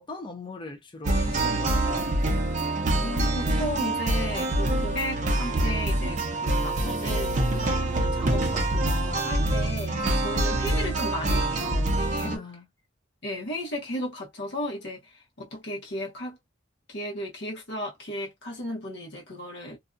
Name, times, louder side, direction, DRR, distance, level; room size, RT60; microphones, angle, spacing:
voice 1, 0.0-2.1 12.2-12.6, left 3 dB, 25° left, 0.5 m, -39 dB
sound 1, 1.0-12.4, right 1 dB, 35° right, 0.6 m, -25 dB
voice 2, 3.0-12.4 13.2-16.4 16.9-19.8, left 1 dB, 55° left, 1.0 m, -35 dB
2.5 x 2.3 x 2.5 m
head